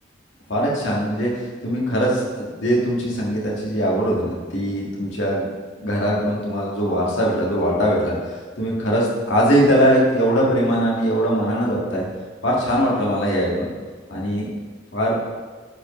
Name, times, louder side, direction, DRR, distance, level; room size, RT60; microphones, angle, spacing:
voice 1, 0.5-5.5 5.8-12.1 12.4-13.7 14.1-14.5 14.9-15.1, equal, 80° left, -4 dB, 1.8 m, -21 dB
10.0 x 4.8 x 3.1 m, 1.5 s
head